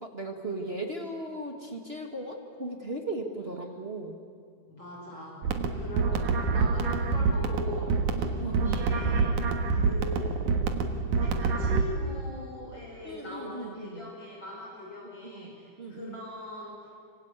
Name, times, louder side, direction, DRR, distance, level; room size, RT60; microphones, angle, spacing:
voice 1, 0.0-4.1 8.4-8.8 13.0-14.0 15.2-15.5 15.8-16.2, right 2 dB, 25° right, 2 dB, 1.6 m, -37 dB
voice 2, 4.7-5.5 5.7-9.3 9.7-10.4 11.2-16.8, left 1 dB, 35° left, -3 dB, 6.7 m, -41 dB
sound 1, 5.4-11.8, right 4 dB, 70° right, 2.9 m, -27 dB
26.5 x 25.5 x 8.3 m, 2.2 s
omnidirectional pair, 3.7 m